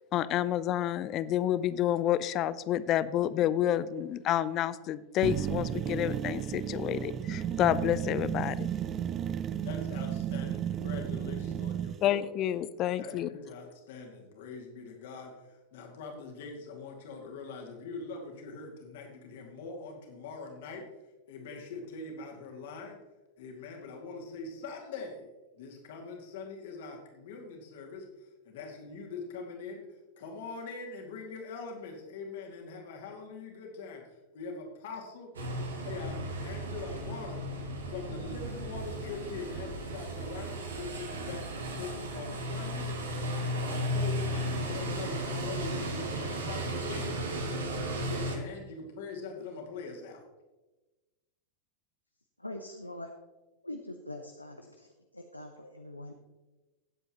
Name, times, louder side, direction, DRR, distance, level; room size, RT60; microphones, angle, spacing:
voice 1, 0.1-8.7 12.0-13.3, left 11 dB, 35° left, 16 dB, 0.5 m, -29 dB
sound 1, 5.2-12.0, right 9 dB, 30° right, 0.5 m, -33 dB
voice 2, 9.6-12.2 13.0-20.8 21.3-23.0 23.4-25.3 25.6-29.9 30.2-34.0 34.3-35.3 35.8-37.4 37.9-47.1 47.9-50.3, left 4 dB, 55° left, 1 dB, 2.3 m, -43 dB
sound 2, 35.3-48.4, right 1 dB, 70° right, 1.7 m, -35 dB
voice 3, 52.4-53.1 53.6-54.9 55.1-56.1, left 1 dB, 85° left, 5 dB, 0.7 m, -43 dB
17.0 x 7.8 x 3.0 m, 1.1 s
figure-of-eight pair, 90°, 0 cm